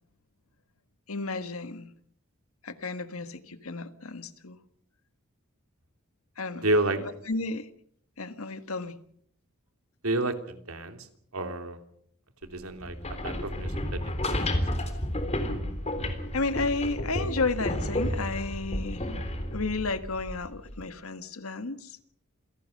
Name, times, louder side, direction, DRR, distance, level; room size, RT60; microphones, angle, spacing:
voice 1, 1.1-1.9 2.6-4.6 6.4-6.7 7.0-7.7 8.2-8.9 16.3-19.1 19.5-22.0, left 3 dB, 80° left, 1.7 m, -32 dB
voice 2, 6.6-7.0 10.0-11.1 11.3-11.8 12.5-13.0 13.2-14.6, right 2 dB, 80° right, 3.1 m, -30 dB
sound 1, 12.8-20.8, left 1 dB, 30° left, 3.6 m, -31 dB
27.5 x 17.5 x 6.6 m
head